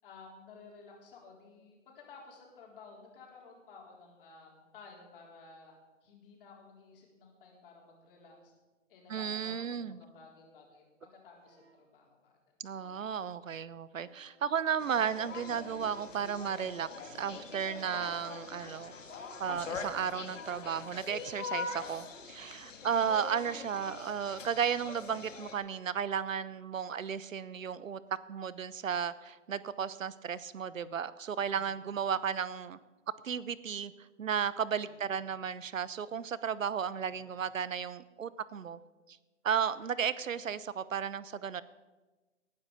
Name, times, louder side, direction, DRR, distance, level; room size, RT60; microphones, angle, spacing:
voice 1, 0.0-8.5 8.9-12.6 22.8-23.1 31.5-31.9 34.9-35.3 36.9-37.4, left 4 dB, 45° left, -1 dB, 4.2 m, -55 dB
voice 2, 9.1-10.0 12.6-18.9 19.4-28.0 28.3-32.8 33.2-33.9 34.2-38.8 39.4-41.6, right 7 dB, 85° right, 17 dB, 0.9 m, -34 dB
sound 1, 11.3-11.9 12.7-13.2 14.0-14.5 15.7-15.8, right 4 dB, 20° right, 2.5 m, -66 dB
sound 2, 14.8-25.5, left 4 dB, 75° left, 2.3 m, -43 dB
18.5 x 9.9 x 5.3 m, 1.2 s
hypercardioid pair, 145°, 38 cm